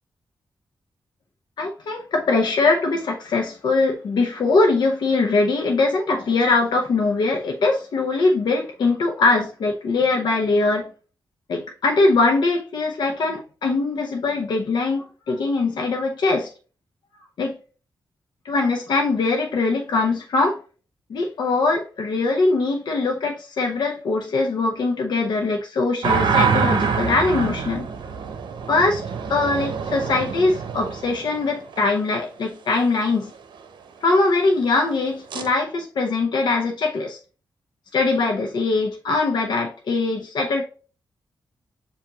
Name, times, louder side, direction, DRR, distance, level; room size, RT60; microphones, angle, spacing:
voice 1, 1.6-10.9 11.5-16.5 17.4-17.5 18.4-20.6 21.1-27.8 28.7-29.0 29.3-33.3 34.0-37.2 37.9-40.6, left 3 dB, 70° left, 1 dB, 0.8 m, -21 dB
sound 1, 26.0-31.8 35.3-35.5, right 6 dB, 80° right, 0.7 m, -25 dB
7.0 x 2.6 x 2.8 m, 0.36 s
wide cardioid pair, 155°, 8 cm